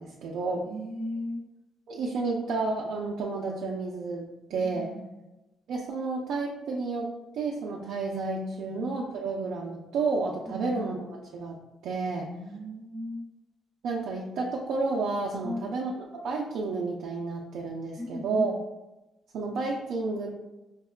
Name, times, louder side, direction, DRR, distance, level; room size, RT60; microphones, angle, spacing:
voice 1, 0.0-0.6 1.9-4.9 5.7-11.6 11.8-12.3 13.8-15.9 16.2-18.5 19.3-20.3, right 3 dB, 75° right, -2 dB, 0.4 m, -31 dB
voice 2, 0.6-1.4 4.5-5.2 8.5-8.8 10.5-10.7 12.1-13.2 15.4-15.7 18.0-18.6, equal, 15° left, -7 dB, 0.8 m, -37 dB
4.6 x 2.1 x 2.3 m, 1.0 s
cardioid pair, 90°, 0 cm